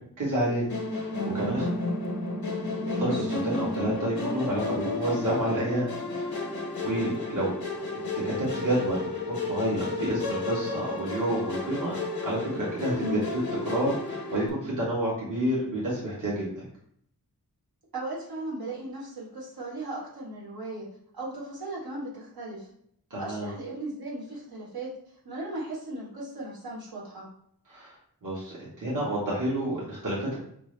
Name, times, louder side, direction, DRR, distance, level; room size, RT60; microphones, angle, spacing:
voice 1, 0.2-0.7 0.9-1.7 3.0-5.9 6.2-6.4 6.8-7.5 7.9-11.9 12.2-13.2 13.6-16.6 23.1-23.5 27.7-27.9 28.2-30.4, right 1 dB, 55° right, -7 dB, 1.4 m, -29 dB
Musical instrument, 0.7-14.5, left 2 dB, 65° left, 0.9 m, -32 dB
voice 2, 2.8-3.3 13.0-13.2 17.9-20.8 21.1-22.7 23.2-24.9 25.2-27.3, right 1 dB, 70° right, -6 dB, 1.6 m, -36 dB
5.8 x 2.0 x 3.3 m, 0.68 s
wide cardioid pair, 120°, 38 cm